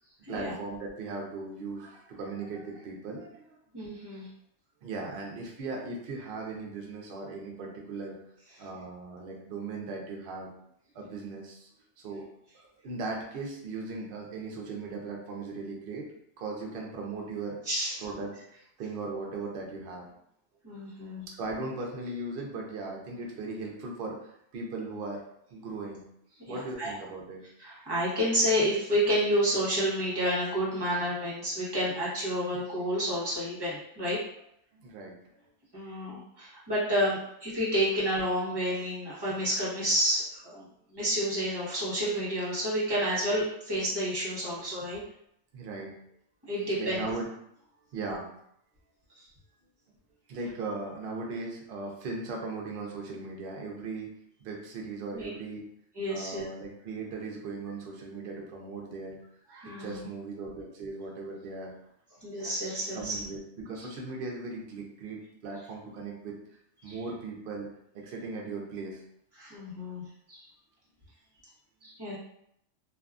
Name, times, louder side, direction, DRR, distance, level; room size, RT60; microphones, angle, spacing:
voice 1, 0.3-3.4 4.8-8.2 8.6-10.5 10.9-11.7 12.0-12.3 12.5-16.1 16.4-17.6 18.0-18.3 18.8-20.1 21.3-25.2 25.5-26.0 26.5-27.4 34.7-35.2 45.5-45.9 46.8-47.3 47.9-48.3 50.3-54.1 54.4-55.6 56.1-59.2 59.8-61.7 62.9-66.4 66.8-67.7 67.9-69.0, right 3 dB, 60° right, 0 dB, 0.7 m, -38 dB
voice 2, 3.7-4.3 17.6-18.0 20.6-21.2 26.5-26.9 27.6-34.2 35.7-40.6 40.9-45.0 46.5-47.0 48.1-48.2 55.1-55.3 55.9-56.5 59.5-60.0 62.2-63.2 66.9-67.0 69.4-70.0 70.3-70.4 71.8-72.2, equal, 20° right, -8 dB, 0.9 m, -30 dB
2.6 x 2.3 x 2.3 m, 0.74 s
omnidirectional pair, 1.3 m